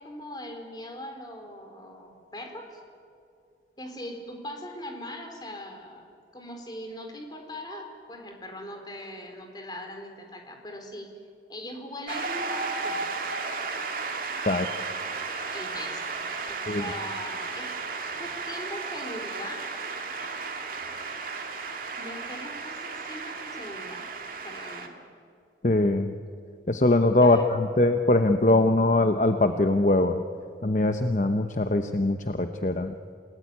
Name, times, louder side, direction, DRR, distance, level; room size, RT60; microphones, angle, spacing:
voice 1, 0.0-2.8 3.8-6.1 6.3-11.1 11.5-13.0 15.5-16.0 16.5-17.7 18.2-19.7 22.0-24.1 24.4-24.9 27.2-27.5, left 1 dB, 25° left, 3 dB, 4.0 m, -40 dB
Shout / Cheering / Applause, 12.1-24.9, right 4 dB, 50° right, 2.4 m, -34 dB
voice 2, 25.6-26.2 26.7-30.2 30.6-32.9, left 2 dB, 45° left, 7 dB, 0.9 m, -22 dB
28.5 x 19.0 x 9.6 m, 2.4 s
head